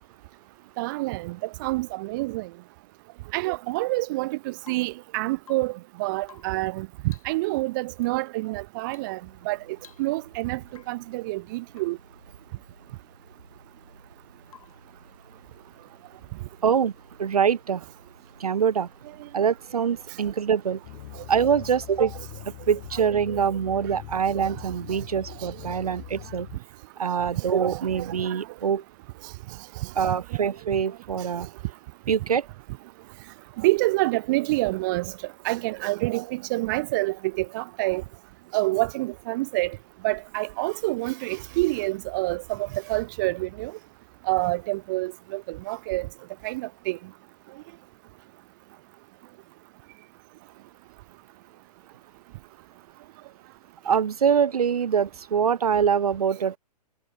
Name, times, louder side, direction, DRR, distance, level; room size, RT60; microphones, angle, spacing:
voice 1, 0.8-1.4 1.6-2.5 3.3-5.7 6.0-6.9 7.2-9.2 9.5-9.6 10.0-10.6 10.9-12.0 23.3-23.4 27.5-28.1 30.0-30.1 33.6-35.1 35.4-38.0 38.5-39.8 40.0-43.7 44.3-46.1 46.4-47.0, right 21 dB, 30° right, 0.6 m, -27 dB
Rain / Water tap faucet / Drip, 3.7-4.1 4.6-5.1 5.4-5.8 6.2-6.7 7.0-7.4 8.0-8.2 8.9-9.2 9.4-9.5 9.8-10.3 10.7-11.1 11.7-12.0 14.5-14.9 16.8-16.9, left 8 dB, 60° left, 5.9 m, -54 dB
sound 1, 8.8-22.5, right 2 dB, 90° right, 6.6 m, -55 dB
voice 2, 16.6-16.9 17.2-17.8 18.4-18.9 19.3-20.8 21.3-22.2 22.7-26.5 27.0-28.8 30.0-31.5 32.1-32.5 53.8-56.6, right 7 dB, 65° right, 1.0 m, -24 dB
sci-fi drone ambience, 20.8-26.6, left 24 dB, 30° left, 0.7 m, -42 dB
figure-of-eight pair, 120°, 21 cm